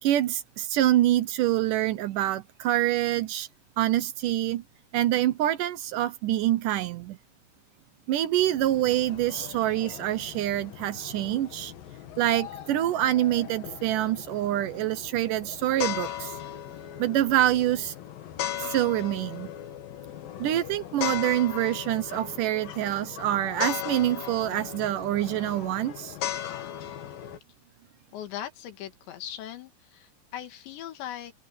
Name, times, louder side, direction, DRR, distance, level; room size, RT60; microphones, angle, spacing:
voice 1, 0.0-3.5 3.8-4.6 4.9-7.2 8.1-11.7 12.2-16.4 17.0-17.9 18.6-19.5 20.4-26.2, right 13 dB, 85° right, 1.8 m, -26 dB
sound 1, 8.4-27.4, left 11 dB, 60° left, 3.0 m, -38 dB
voice 2, 28.1-31.3, left 11 dB, 85° left, 4.3 m, -39 dB
omnidirectional pair, 5.0 m